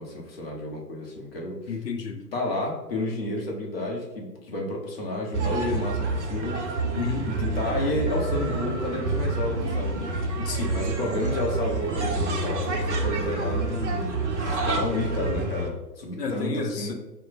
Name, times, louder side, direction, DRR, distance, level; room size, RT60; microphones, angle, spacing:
voice 1, 0.0-1.8 2.3-6.8 7.3-10.0 10.7-16.9, left 1 dB, 35° left, -1 dB, 0.7 m, -31 dB
voice 2, 1.7-2.2 6.9-7.3 10.4-10.7 16.2-16.9, left 5 dB, 70° left, 5 dB, 0.7 m, -31 dB
sound 1, 5.3-15.7, right 3 dB, 45° right, 0.6 m, -28 dB
3.0 x 2.1 x 3.9 m, 1.0 s
figure-of-eight pair, 125°, 50 cm